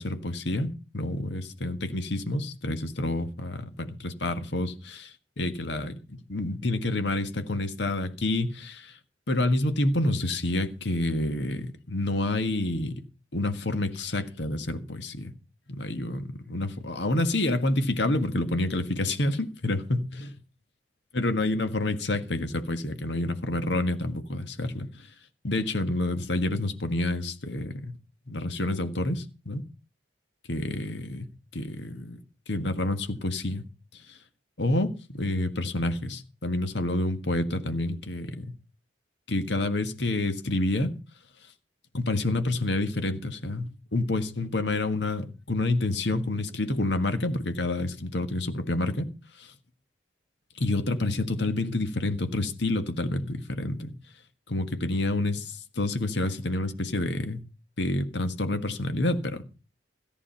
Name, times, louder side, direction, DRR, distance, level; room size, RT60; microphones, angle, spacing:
voice 1, 0.0-9.0 9.3-13.0 13.3-15.3 15.7-20.0 21.1-25.1 25.4-27.9 28.3-29.6 30.5-31.3 31.5-32.2 32.5-33.6 34.1-34.2 34.6-38.5 39.3-40.9 41.9-49.1 49.4-49.5 50.6-53.9 54.5-57.4 57.8-59.4, left 2 dB, 75° left, 1.7 m, -28 dB
14.5 x 9.9 x 5.7 m
head